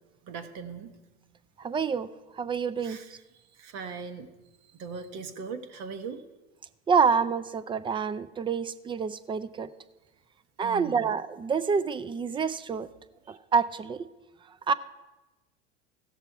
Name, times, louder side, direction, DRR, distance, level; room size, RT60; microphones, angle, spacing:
voice 1, 0.2-0.9 2.8-3.2 3.6-4.3 4.7-6.2 10.6-11.0 13.3-13.4, right 5 dB, 55° right, 1.1 m, -39 dB
voice 2, 1.6-2.1 2.4-3.0 6.9-9.7 10.6-12.9 13.3-14.0 14.7-14.8, right 5 dB, 15° right, 0.4 m, -27 dB
16.0 x 6.7 x 4.6 m
hypercardioid pair, 80°, 32 cm